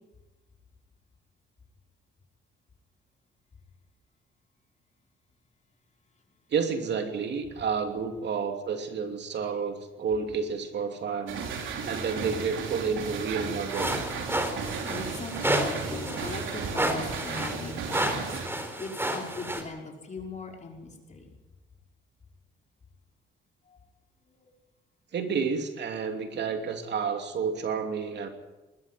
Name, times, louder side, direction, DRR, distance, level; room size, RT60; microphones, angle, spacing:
voice 1, 6.5-11.4 11.8-14.1 25.1-28.3, right 6 dB, 60° right, 6 dB, 2.8 m, -30 dB
sound 1, 11.3-18.5, right 5 dB, 80° right, 3.7 m, -35 dB
sound 2, 13.7-19.6, right 1 dB, 10° right, 4.0 m, -31 dB
voice 2, 14.9-18.3 18.8-21.3 23.7-23.8 24.4-24.5, left 3 dB, 35° left, 1 dB, 5.4 m, -39 dB
20.5 x 13.0 x 9.6 m, 1.1 s
cardioid pair, 90°, 20 cm